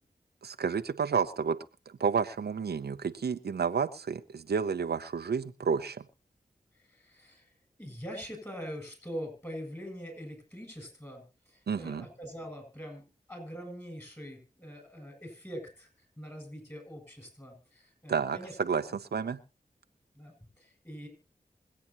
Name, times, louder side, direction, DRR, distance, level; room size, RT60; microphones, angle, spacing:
voice 1, 0.4-1.6 2.0-6.0 11.7-12.1 18.1-19.4, right 6 dB, 85° right, 9 dB, 0.8 m, -30 dB
voice 2, 6.8-7.5 7.8-15.9 16.2-18.8 20.1-21.1, equal, 15° left, 4 dB, 7.9 m, -43 dB
25.5 x 8.7 x 3.0 m, 0.31 s
cardioid pair, 40°, 16 cm